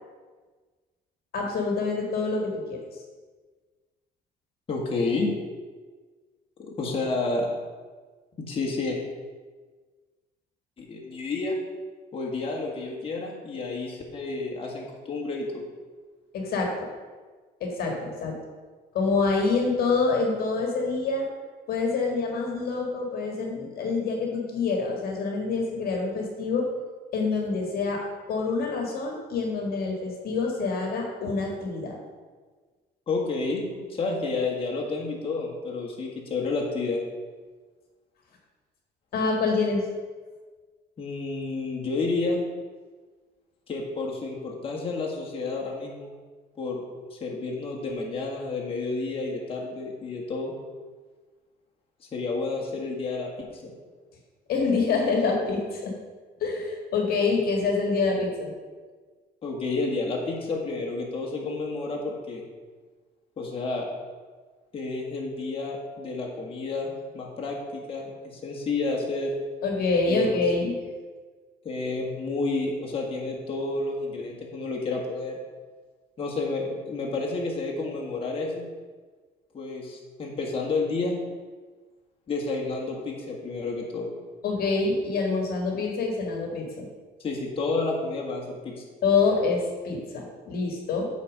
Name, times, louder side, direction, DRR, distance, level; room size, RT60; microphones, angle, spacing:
voice 1, 1.3-2.8 16.3-16.7 17.6-18.3 18.9-21.3 21.7-26.7 27.1-28.0 28.3-32.0 39.1-39.8 54.5-55.9 56.4-58.5 69.6-70.7 84.4-86.8 89.0-91.1, left 4 dB, 65° left, 1 dB, 1.7 m, -26 dB
voice 2, 4.7-5.3 6.6-7.5 8.4-9.0 10.8-11.6 12.1-15.6 33.1-37.0 41.0-42.4 43.7-46.1 46.6-46.8 47.1-50.5 52.1-53.7 59.4-62.4 63.4-63.9 64.7-69.3 70.1-70.3 71.6-75.4 76.2-78.6 79.5-81.2 82.3-84.1 87.2-88.8, left 3 dB, 35° left, -2 dB, 1.8 m, -30 dB
8.4 x 4.3 x 6.4 m, 1.4 s
cardioid pair, 110°, 17 cm